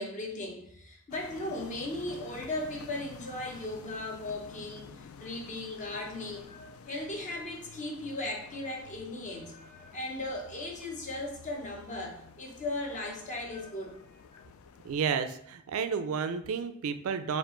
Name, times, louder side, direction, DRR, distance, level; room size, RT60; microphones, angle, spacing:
voice 1, 0.0-14.0 14.3-14.4, left 2 dB, 35° left, 0 dB, 0.8 m, -37 dB
sound 1, 1.1-15.1, left 6 dB, 70° left, 0.3 m, -51 dB
voice 2, 14.8-17.4, right 6 dB, 70° right, 9 dB, 0.4 m, -31 dB
4.5 x 2.4 x 3.8 m, 0.70 s
head